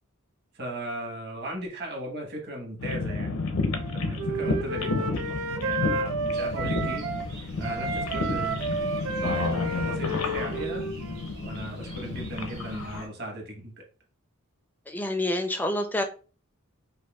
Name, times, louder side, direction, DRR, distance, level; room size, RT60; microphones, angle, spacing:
voice 1, 0.5-3.4 3.9-7.1 7.6-8.6 9.2-10.8 11.4-13.7, right 1 dB, 45° right, 1 dB, 1.1 m, -37 dB
sound 1, 2.8-13.0, left 3 dB, 70° left, 0.6 m, -31 dB
Wind instrument woodwind instrument, 3.7-7.3 7.6-11.4, right 3 dB, 65° right, 0.5 m, -31 dB
sound 2, 6.3-13.1, right 2 dB, 90° right, 1.9 m, -47 dB
voice 2, 14.9-16.0, left 1 dB, 10° left, 6 dB, 0.4 m, -27 dB
5.2 x 2.2 x 2.2 m, 0.36 s
head